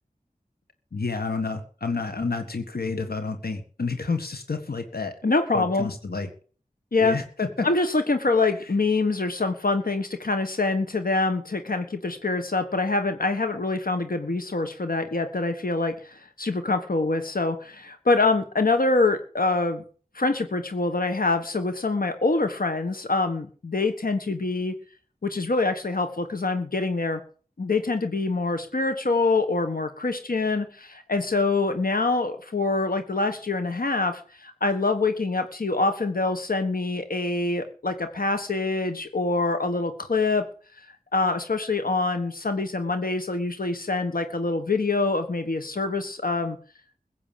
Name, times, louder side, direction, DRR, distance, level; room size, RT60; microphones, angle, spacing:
voice 1, 0.9-5.1 5.5-6.3 7.0-7.7, left 4 dB, 90° left, 7 dB, 1.7 m, -29 dB
voice 2, 5.2-5.9 6.9-7.2 7.6-19.8 20.1-24.8 25.2-27.2 27.6-40.4 40.8-46.6, left 3 dB, 70° left, 8 dB, 1.5 m, -25 dB
16.0 x 8.3 x 7.5 m, 0.42 s
wide cardioid pair, 60°, 15 cm